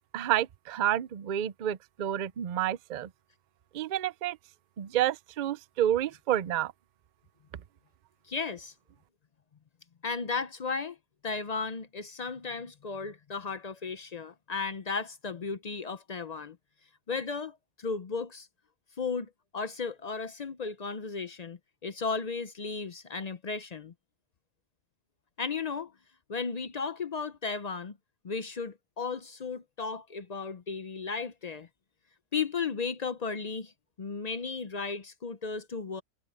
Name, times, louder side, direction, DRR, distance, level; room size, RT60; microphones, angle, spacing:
voice 1, 0.1-3.1 3.7-4.4 4.8-6.7, right 11 dB, 70° right, 0.4 m, -29 dB
voice 2, 8.3-8.7 10.0-11.0 11.2-16.6 17.1-18.5 19.0-23.9 25.4-25.9 26.3-28.0 28.2-31.7 32.3-33.7 34.0-36.0, left 5 dB, 50° left, 0.4 m, -35 dB
omnidirectional pair, 1.5 m